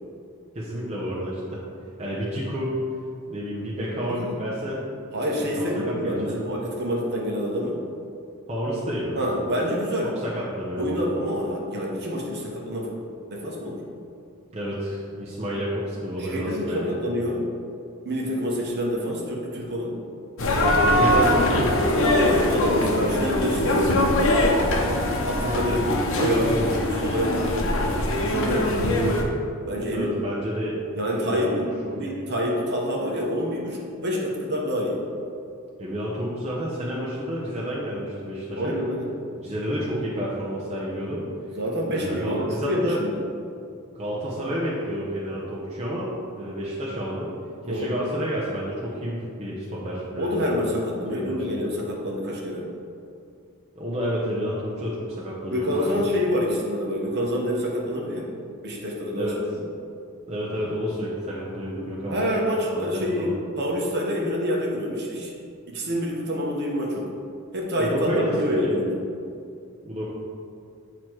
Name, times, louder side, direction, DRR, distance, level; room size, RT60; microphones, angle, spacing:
voice 1, 0.5-1.6 2.0-2.8 3.3-4.8 5.4-6.5 8.5-9.2 10.0-11.1 14.5-16.9 20.9-21.7 28.4-28.7 29.9-30.8 31.1-32.1 35.8-38.8 39.3-41.3 41.9-43.0 43.9-47.3 47.7-50.4 51.1-51.5 53.8-56.0 59.2-59.4 60.3-62.3 62.6-63.3 67.8-68.8 69.8-70.1, equal, 30° right, -6 dB, 0.8 m, -30 dB
voice 2, 4.0-4.4 5.1-7.8 9.1-10.1 10.8-12.9 13.3-13.8 16.2-17.5 18.0-20.0 22.0-24.5 25.2-27.6 28.2-29.3 29.7-30.1 30.9-35.0 38.6-39.1 41.5-43.2 47.6-47.9 50.2-52.6 55.5-58.3 58.6-59.6 62.1-65.3 65.7-67.0 67.5-69.0, equal, 50° right, -2 dB, 1.0 m, -27 dB
sound 1, 20.4-29.2, left 1 dB, 60° left, 0.7 m, -22 dB
8.2 x 3.0 x 4.5 m, 2.4 s
head